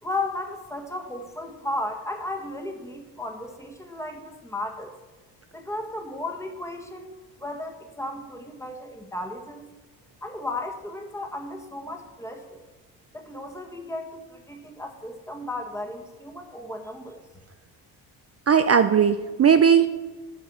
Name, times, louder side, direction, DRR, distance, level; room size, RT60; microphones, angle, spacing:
voice 1, 0.0-4.9 5.5-9.6 10.2-12.6 13.1-17.2, left 2 dB, 5° left, 3 dB, 1.6 m, -34 dB
voice 2, 18.5-19.9, right 7 dB, 30° right, 10 dB, 0.5 m, -18 dB
10.5 x 5.5 x 6.3 m, 1.3 s
supercardioid pair, 65°, 49 cm